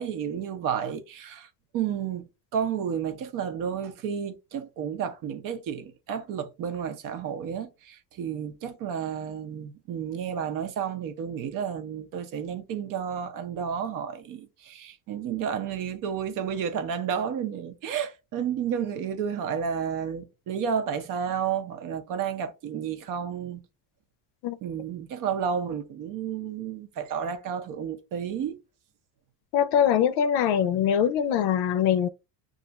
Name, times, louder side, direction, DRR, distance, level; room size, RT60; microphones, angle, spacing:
voice 1, 0.0-1.5 1.7-2.2 2.5-23.6 24.6-28.6, right 7 dB, 50° right, 0.7 m, -31 dB
voice 2, 29.5-32.1, left 9 dB, 70° left, 0.5 m, -23 dB
2.5 x 2.4 x 4.0 m
cardioid pair, 150°, 41 cm